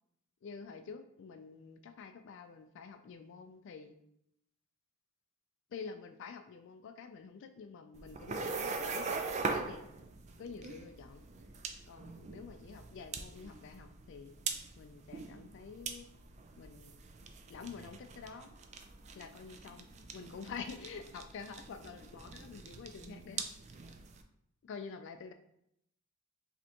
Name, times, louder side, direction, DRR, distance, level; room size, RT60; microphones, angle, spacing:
voice 1, 0.4-3.9 5.7-9.9 10.4-11.2 11.9-14.4 14.8-16.1 16.6-17.0 17.5-18.5 19.1-23.5 24.6-25.3, left 5 dB, 55° left, 7 dB, 0.3 m, -48 dB
sound 1, 7.9-24.2, right 4 dB, 30° right, 0.3 m, -42 dB
4.9 x 3.4 x 2.9 m, 0.76 s
head